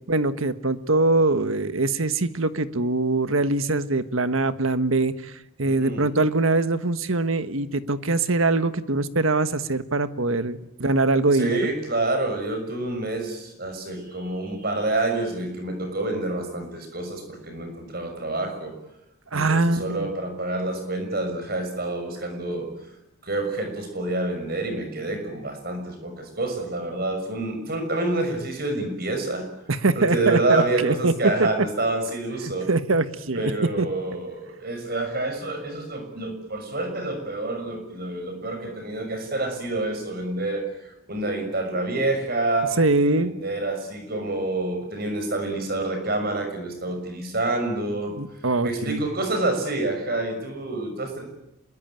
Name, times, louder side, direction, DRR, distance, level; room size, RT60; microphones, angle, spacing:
voice 1, 0.1-5.3 5.6-11.7 19.3-20.1 29.7-31.1 31.4-31.5 32.7-33.5 33.8-33.9 42.8-43.3 48.2-49.1, right 2 dB, 75° right, 11 dB, 1.4 m, -23 dB
voice 2, 5.6-6.1 11.3-18.7 19.3-22.7 23.2-29.5 29.9-32.7 33.3-42.7 43.1-48.1 48.6-51.2, right 2 dB, 45° right, 6 dB, 6.4 m, -28 dB
26.5 x 22.0 x 9.1 m, 0.86 s
head